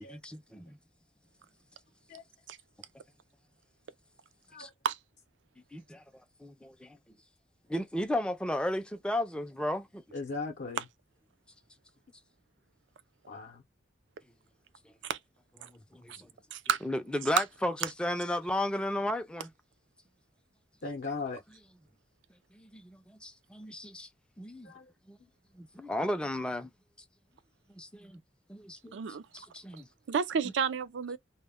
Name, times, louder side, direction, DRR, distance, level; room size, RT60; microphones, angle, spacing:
voice 1, 0.1-0.8 4.6-4.7 5.7-6.0 6.4-7.0 7.7-10.0 15.6-16.3 16.8-19.5 22.5-24.1 24.4-24.7 25.1-25.2 25.5-26.7 27.7-28.2 28.5-29.0 29.3-29.9 30.4-30.5, left 1 dB, 5° left, 0.3 m, -34 dB
voice 2, 10.1-10.8 13.3-13.6 20.8-21.4 24.6-24.9, left 4 dB, 60° left, 0.6 m, -38 dB
voice 3, 16.5-16.8 17.4-17.5 28.9-29.3 30.1-31.2, right 7 dB, 75° right, 0.4 m, -30 dB
2.1 x 2.1 x 3.4 m
head